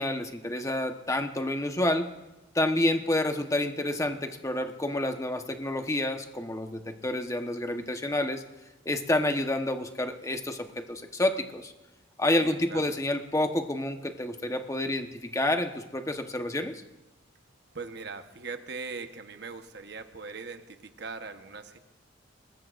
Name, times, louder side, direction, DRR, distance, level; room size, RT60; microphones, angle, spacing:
voice 1, 0.0-2.1 2.5-8.4 8.8-11.7 12.2-16.8, left 1 dB, 15° left, 5 dB, 1.1 m, -29 dB
voice 2, 12.4-12.9 17.7-21.8, right 4 dB, 60° right, 7 dB, 1.1 m, -40 dB
25.0 x 20.5 x 2.6 m, 1.0 s
head